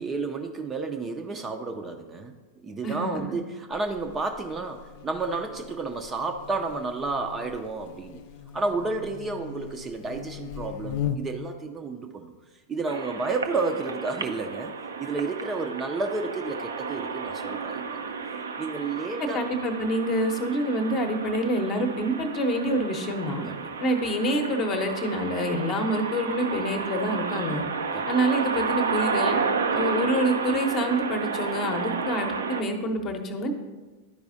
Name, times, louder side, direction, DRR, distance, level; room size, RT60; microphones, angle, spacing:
voice 1, 0.0-2.3 2.6-8.2 8.5-12.3 12.7-14.7 15.0-18.0 18.6-19.4 23.5-23.6 27.9-28.2 29.7-29.8, right 3 dB, 20° right, 5 dB, 0.5 m, -31 dB
voice 2, 2.8-3.4 19.2-23.5 23.8-27.6 28.1-29.4 29.7-33.5, equal, 30° left, 5 dB, 0.9 m, -27 dB
Buzz, 3.7-11.5, left 8 dB, 50° left, 0.4 m, -39 dB
sound 1, 12.9-32.6, right 5 dB, 70° right, 0.5 m, -31 dB
11.5 x 4.7 x 2.7 m, 1.2 s
figure-of-eight pair, 90°, 0 cm